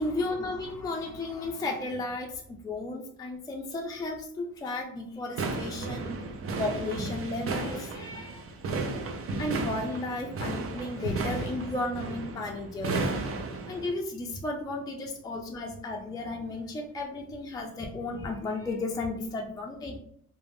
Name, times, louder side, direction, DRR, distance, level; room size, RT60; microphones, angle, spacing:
voice 1, 0.0-6.3 6.6-8.4 8.7-8.9 9.4-20.0, left 2 dB, 15° left, 1 dB, 0.4 m, -34 dB
sound 1, 5.3-13.9, right 3 dB, 50° right, 0.5 m, -34 dB
2.4 x 2.0 x 3.4 m, 0.65 s
cardioid pair, 90°, 30 cm